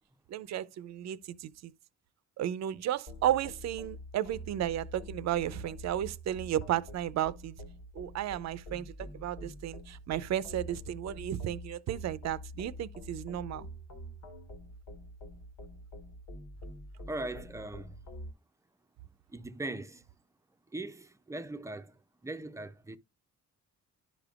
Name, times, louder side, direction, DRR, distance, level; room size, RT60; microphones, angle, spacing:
voice 1, 0.3-1.7 2.4-7.6 7.9-13.7, right 11 dB, 65° right, 0.6 m, -33 dB
sound 1, 3.1-18.3, equal, 80° left, 1.7 m, -46 dB
voice 2, 17.1-18.0 19.3-20.0 20.7-23.0, right 2 dB, 10° right, 0.5 m, -40 dB
11.5 x 5.1 x 2.4 m
cardioid pair, 90°, 30 cm